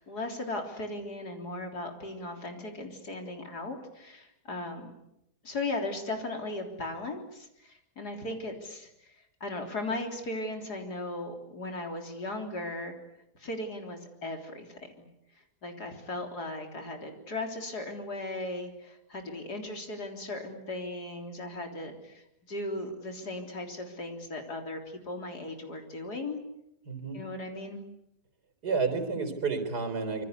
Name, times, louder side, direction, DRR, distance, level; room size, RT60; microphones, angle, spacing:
voice 1, 0.0-4.9 5.4-9.1 9.4-13.0 13.4-15.1 15.6-26.4 27.1-27.8, left 2 dB, 70° left, 4 dB, 4.2 m, -37 dB
voice 2, 26.9-27.2 28.6-30.2, right 4 dB, 70° right, 8 dB, 4.5 m, -30 dB
26.0 x 24.0 x 8.3 m, 0.84 s
omnidirectional pair, 1.8 m